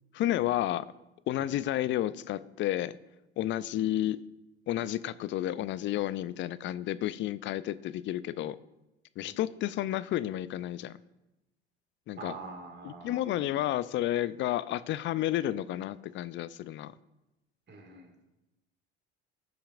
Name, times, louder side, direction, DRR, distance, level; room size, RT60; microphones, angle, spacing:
voice 1, 0.1-0.9 1.3-2.9 3.4-4.2 4.7-8.6 9.2-11.0 12.1-12.3 12.8-16.9, left 13 dB, 40° left, 17 dB, 0.4 m, -31 dB
voice 2, 12.2-13.5 17.7-18.1, right 3 dB, 35° right, 3 dB, 2.0 m, -46 dB
15.5 x 5.8 x 2.5 m, 0.96 s
hypercardioid pair, 65°, 32 cm